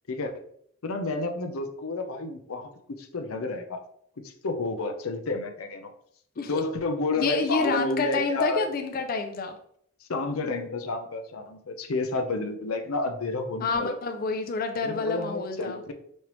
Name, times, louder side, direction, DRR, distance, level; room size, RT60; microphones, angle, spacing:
voice 1, 0.1-0.4 0.8-3.8 4.2-5.9 6.5-8.7 10.1-13.9 14.8-15.9, left 3 dB, 90° left, 6 dB, 0.6 m, -30 dB
voice 2, 7.2-9.6 13.6-15.8, left 4 dB, 45° left, 5 dB, 0.5 m, -28 dB
5.3 x 3.2 x 3.0 m, 0.67 s
head